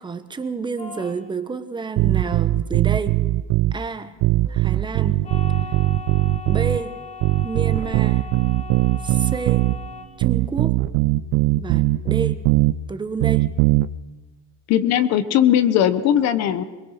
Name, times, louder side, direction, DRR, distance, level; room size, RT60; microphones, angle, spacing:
voice 1, 0.0-3.2 3.7-4.2 4.5-5.2 5.5-5.8 6.4-7.0 7.4-8.3 9.0-9.7 10.2-10.8 11.5-12.4 12.9-13.5, right 4 dB, 15° right, 10 dB, 1.0 m, -29 dB
sound 1, 0.8-1.2 5.2-10.0, left 5 dB, 25° left, 2.9 m, -38 dB
sound 2, 2.0-3.8 4.2-6.8 7.2-9.8 10.2-12.7 13.2-13.9, right 17 dB, 75° right, 0.6 m, -20 dB
voice 2, 14.7-16.6, left 10 dB, 60° left, 13 dB, 1.1 m, -18 dB
22.0 x 22.0 x 5.8 m, 1.2 s
cardioid pair, 155°, 29 cm